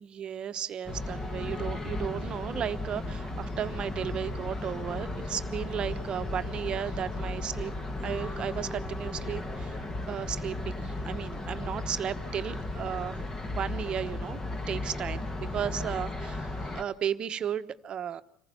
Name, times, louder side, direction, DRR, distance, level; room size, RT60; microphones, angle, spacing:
voice 1, 0.0-7.7 8.0-13.2 13.5-14.4 14.7-16.5 16.7-18.2, right 9 dB, 40° right, 11 dB, 1.1 m, -34 dB
sound 1, 0.9-16.8, left 2 dB, 20° left, 1.8 m, -35 dB
26.0 x 15.0 x 7.0 m, 0.68 s
supercardioid pair, 95°, 3 cm